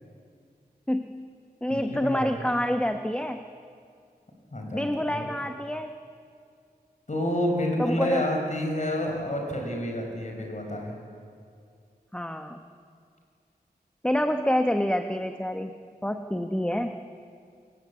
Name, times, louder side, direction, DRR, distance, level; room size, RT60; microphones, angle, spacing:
voice 1, 0.9-1.2 1.6-3.4 4.7-6.0 7.8-8.2 12.1-12.6 14.0-15.7 16.0-17.0, equal, 5° left, 6 dB, 1.0 m, -27 dB
voice 2, 1.7-2.3 4.5-5.3 7.1-10.9, left 1 dB, 45° left, 2 dB, 5.6 m, -29 dB
28.5 x 22.0 x 8.5 m, 2.3 s
wide cardioid pair, 85°, 17 cm